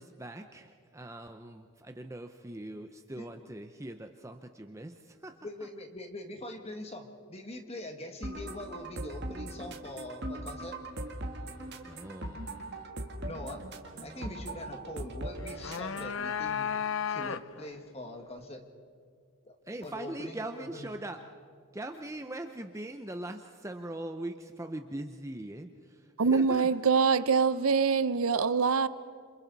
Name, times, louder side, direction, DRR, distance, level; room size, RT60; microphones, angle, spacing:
voice 1, 0.0-5.3 5.6-5.7 11.8-12.6 14.0-14.6 19.7-21.2 21.7-26.7, right 1 dB, 15° right, 0.6 m, -41 dB
voice 2, 5.4-10.8 13.2-13.6 14.0-16.7 17.1-18.6 19.4-19.6 19.8-20.4 20.7-20.9, left 1 dB, 30° left, 1.7 m, -43 dB
sound 1, 8.2-16.2, right 1 dB, 50° right, 1.8 m, -40 dB
sound 2, 15.4-17.7, left 7 dB, 60° left, 0.6 m, -34 dB
voice 3, 26.2-28.9, right 5 dB, 75° right, 0.7 m, -24 dB
28.0 x 26.5 x 4.1 m
head